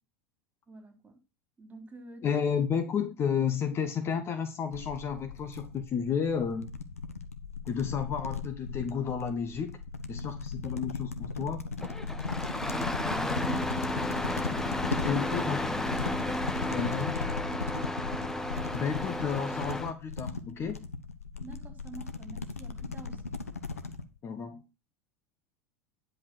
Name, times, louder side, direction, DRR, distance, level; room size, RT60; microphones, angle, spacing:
voice 1, 0.7-1.2 1.6-2.4 12.5-13.7 21.4-23.3, right 2 dB, 20° right, 3.4 m, -47 dB
voice 2, 2.2-6.7 7.6-9.8 10.1-11.6 15.0-15.7 16.6-17.2 18.7-20.9 24.2-24.6, left 7 dB, 35° left, 1.3 m, -31 dB
sound 1, 4.7-24.0, left 4 dB, 85° left, 1.0 m, -37 dB
Engine starting, 11.8-19.9, left 1 dB, 5° left, 1.0 m, -33 dB
10.5 x 5.3 x 6.2 m
figure-of-eight pair, 80°, 8 cm